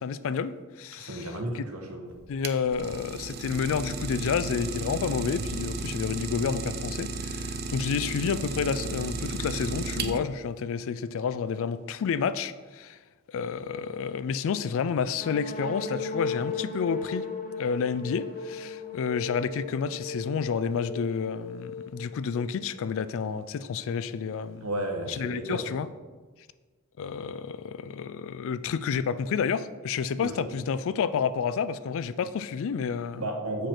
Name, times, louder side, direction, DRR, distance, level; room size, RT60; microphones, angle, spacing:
voice 1, 0.0-1.3 1.5-1.7 2.3-13.0 13.3-17.3 17.6-24.7 25.1-25.9 27.0-33.2, left 6 dB, 65° left, 15 dB, 0.3 m, -30 dB
voice 2, 0.9-2.2 24.6-25.6 30.2-30.5 33.1-33.7, right 1 dB, 80° right, 2 dB, 1.2 m, -33 dB
Idling, 2.2-10.5, right 3 dB, 45° right, 0.5 m, -34 dB
sound 1, 15.2-22.9, left 4 dB, 40° left, 0.9 m, -37 dB
7.5 x 5.0 x 4.4 m, 1.4 s
head